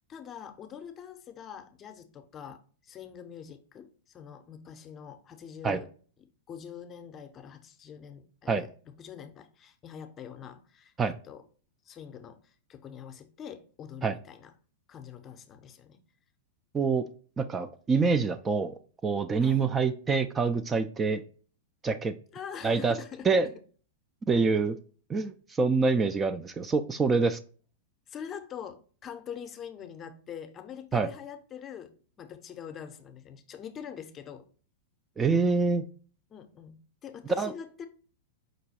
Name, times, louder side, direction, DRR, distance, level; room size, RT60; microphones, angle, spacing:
voice 1, 0.1-5.9 6.5-8.7 9.0-10.9 11.3-11.4 11.9-14.5 14.9-16.0 19.4-19.7 22.3-23.3 28.1-34.5 36.3-36.7 37.0-37.9, left 8 dB, 30° left, 0.6 m, -44 dB
voice 2, 17.4-18.8 19.0-21.2 21.8-22.1 22.6-23.0 23.2-23.5 24.3-24.8 25.1-27.4 30.9-31.1 35.2-35.9 37.4-37.5, right 4 dB, 20° right, 0.3 m, -26 dB
5.0 x 2.2 x 4.1 m
hypercardioid pair, 110°, 0 cm